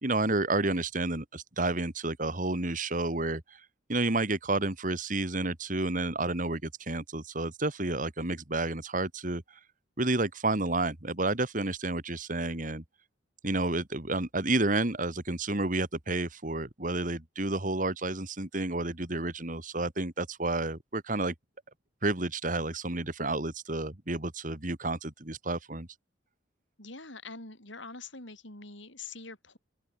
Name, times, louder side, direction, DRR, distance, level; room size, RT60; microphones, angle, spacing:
voice 1, 0.0-3.6 3.9-9.4 10.0-12.8 13.4-21.3 22.0-25.9, right 2 dB, 40° right, 2.3 m, -30 dB
voice 2, 26.8-29.6, left 3 dB, 70° left, 6.2 m, -44 dB
open air
head